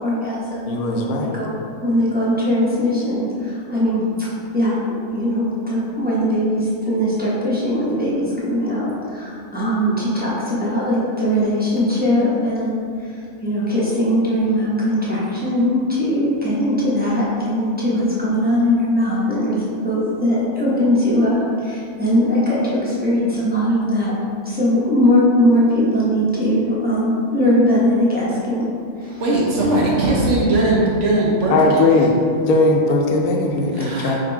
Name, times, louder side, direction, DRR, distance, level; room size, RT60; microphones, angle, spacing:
voice 1, 0.0-4.3 4.5-4.8 5.1-24.1 24.4-28.7 29.0-29.2 33.8-33.9, equal, 10° right, -9 dB, 0.6 m, -20 dB
voice 2, 0.7-1.4 31.5-32.1 32.4-34.2, left 2 dB, 85° left, 1 dB, 1.0 m, -18 dB
voice 3, 29.0-32.1 33.4-34.2, right 2 dB, 60° right, -4 dB, 1.1 m, -19 dB
3.8 x 2.6 x 4.4 m, 2.3 s
omnidirectional pair, 1.5 m